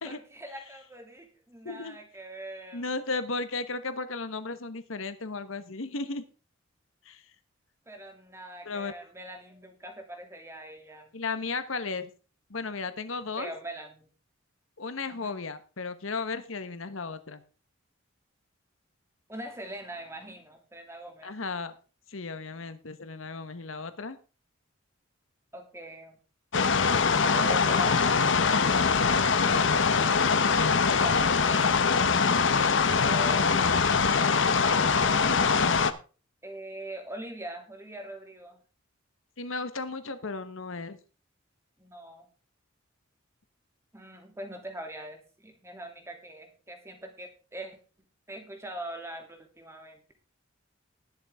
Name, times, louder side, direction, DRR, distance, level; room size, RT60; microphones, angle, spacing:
voice 1, 0.0-2.9 7.9-11.1 13.3-14.1 15.1-15.4 19.3-21.3 25.5-26.2 27.1-28.5 30.9-31.7 33.0-35.6 36.4-38.6 41.8-42.3 43.9-47.8 48.3-50.2, right 1 dB, 15° right, 3 dB, 2.7 m, -42 dB
voice 2, 1.6-1.9 2.7-6.2 7.0-7.2 8.6-8.9 11.1-12.1 12.5-13.5 14.8-17.4 21.2-21.7 22.1-24.2 39.4-41.0, left 4 dB, 80° left, 11 dB, 1.2 m, -35 dB
sound 1, 26.5-35.9, left 5 dB, 65° left, 0.9 m, -23 dB
20.0 x 7.1 x 3.6 m, 0.35 s
head